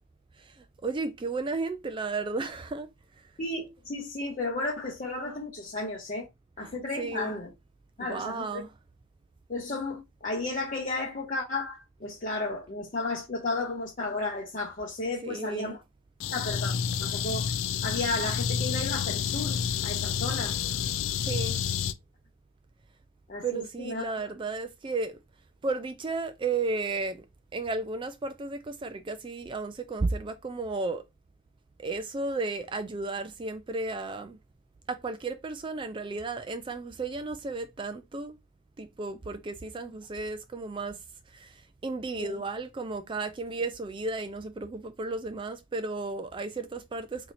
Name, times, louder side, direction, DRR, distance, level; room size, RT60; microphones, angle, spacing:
voice 1, 0.4-2.9 6.6-7.4 8.1-8.7 15.2-15.8 21.2-21.6 23.4-25.2 25.6-27.2 27.5-31.0 31.8-34.4 34.9-38.3 38.8-41.0 41.3-47.3, right 3 dB, 25° right, 0.3 m, -34 dB
voice 2, 3.4-6.3 6.6-7.5 8.0-8.6 9.5-15.8 16.3-16.7 17.0-17.5 17.8-19.6 19.8-20.6 23.3-24.2 42.2-42.4, left 2 dB, 40° left, 0.7 m, -33 dB
sound 1, 16.2-21.9, left 7 dB, 75° left, 0.4 m, -29 dB
4.3 x 2.8 x 2.6 m
head